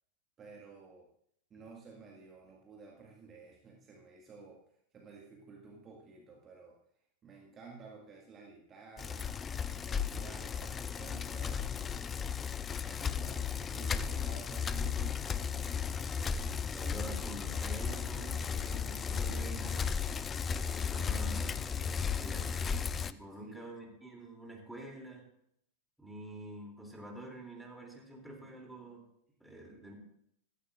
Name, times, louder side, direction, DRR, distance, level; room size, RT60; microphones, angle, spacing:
voice 1, 0.4-1.1 1.5-4.6 4.9-6.8 7.2-12.1 12.7-15.4 23.4-23.6, right 4 dB, 25° right, -1 dB, 2.0 m, -53 dB
Bicycle, 9.0-23.1, left 6 dB, 20° left, 0.5 m, -35 dB
voice 2, 16.7-19.9 20.7-22.6 23.1-25.3 26.0-29.0 29.4-29.9, right 1 dB, ahead, 0 dB, 3.0 m, -47 dB
16.0 x 14.0 x 2.6 m, 0.69 s
figure-of-eight pair, 90°, 0 cm